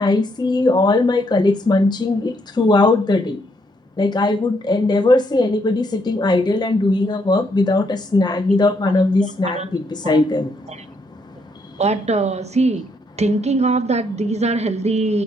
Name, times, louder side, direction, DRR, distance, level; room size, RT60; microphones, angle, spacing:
voice 1, 0.0-3.4 4.0-10.5, left 2 dB, 15° left, 0.7 m, -18 dB
voice 2, 9.2-9.6 10.0-10.2 10.7-10.8 11.8-12.9 13.2-15.2, right 2 dB, 20° right, 1.2 m, -21 dB
7.9 x 6.8 x 7.4 m
cardioid pair, 90°, 30 cm